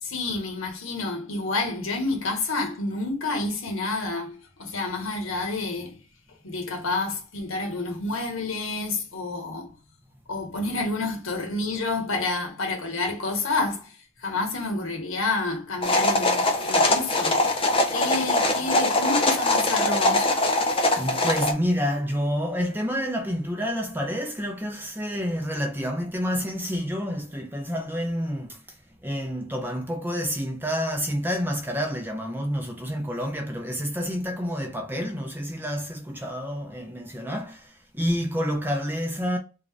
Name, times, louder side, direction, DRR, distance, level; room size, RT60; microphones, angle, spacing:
voice 1, 0.0-6.0 6.4-9.7 10.3-14.0 14.2-17.5 17.9-20.3, left 3 dB, 85° left, 1.1 m, -29 dB
sound 1, 15.8-21.5, left 2 dB, 25° left, 0.6 m, -22 dB
voice 2, 21.0-28.6 29.0-39.4, equal, 10° right, 0.7 m, -28 dB
3.7 x 2.6 x 3.3 m
head